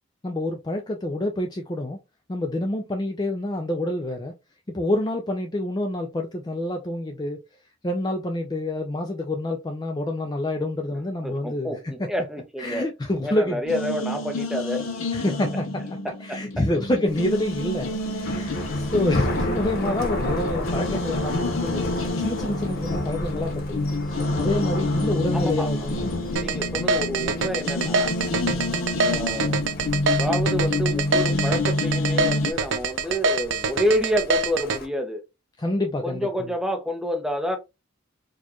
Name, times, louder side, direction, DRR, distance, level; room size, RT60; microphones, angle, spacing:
voice 1, 0.2-2.0 2.3-4.3 4.7-7.4 7.8-12.1 12.6-13.6 15.1-15.8 16.2-21.8 22.2-23.9 24.4-26.1 28.4-28.7 35.6-36.3, left 1 dB, 20° left, 0.4 m, -27 dB
voice 2, 11.2-12.8 13.2-15.3 16.0-16.4 25.3-25.9 26.4-28.1 29.0-29.6 30.1-35.2 36.0-37.6, equal, ahead, 0.7 m, -28 dB
sound 1, 13.6-32.5, left 2 dB, 80° left, 0.7 m, -28 dB
Thunder, 17.1-34.8, left 1 dB, 50° left, 1.0 m, -33 dB
sound 2, 26.4-34.8, right 4 dB, 65° right, 0.5 m, -24 dB
4.3 x 2.4 x 2.9 m
head